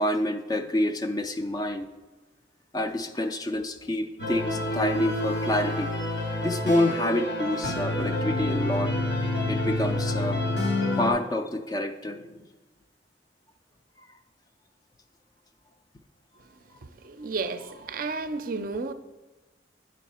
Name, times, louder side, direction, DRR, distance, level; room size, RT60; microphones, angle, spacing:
voice 1, 0.0-1.9 2.7-5.9 6.4-8.9 9.2-10.5 10.8-12.5 14.1-14.2, left 1 dB, 20° left, 0.3 m, -28 dB
sound 1, 4.2-11.1, left 1 dB, 80° left, 1.9 m, -28 dB
voice 2, 17.0-18.9, right 3 dB, 50° right, 0.4 m, -32 dB
9.0 x 5.3 x 4.2 m
head